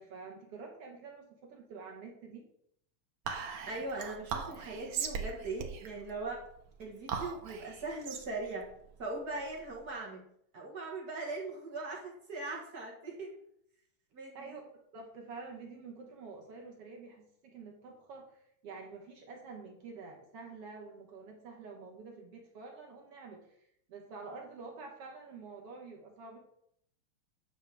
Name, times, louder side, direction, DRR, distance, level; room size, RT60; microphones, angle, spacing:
voice 1, 0.0-2.5 14.3-14.6 14.9-23.5 23.9-26.4, right 4 dB, 60° right, 1 dB, 1.9 m, -48 dB
Whispering, 3.3-9.9, right 6 dB, 90° right, 1.0 m, -40 dB
voice 2, 3.7-6.4 6.8-8.7 9.0-10.2 10.5-13.4 14.1-14.6, right 3 dB, 40° right, -2 dB, 1.5 m, -40 dB
10.0 x 6.8 x 3.5 m, 0.71 s
omnidirectional pair, 3.5 m